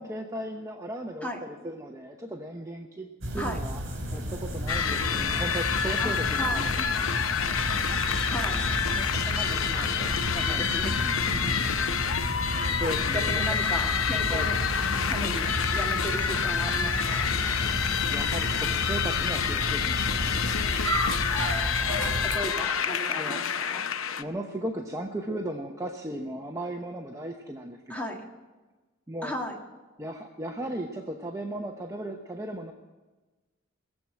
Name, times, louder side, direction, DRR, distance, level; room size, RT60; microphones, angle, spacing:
voice 1, 0.0-3.8 4.1-7.1 10.5-10.7 11.3-11.7 12.8-13.4 14.3-14.5 17.6-20.3 23.2-23.4 24.2-28.1 29.1-29.3 30.0-32.7, right 1 dB, 15° right, 2 dB, 0.8 m, -36 dB
sound 1, 3.2-22.4, equal, 65° right, 3.5 m, -32 dB
sound 2, 4.7-24.2, left 7 dB, 85° left, 0.7 m, -28 dB
voice 2, 6.0-6.7 8.2-8.6 8.9-11.0 12.5-12.8 13.1-14.6 15.1-17.3 21.9-23.8 27.9-28.2 29.2-29.6, equal, 10° left, 0 dB, 1.9 m, -36 dB
19.5 x 7.7 x 8.8 m, 1.2 s
head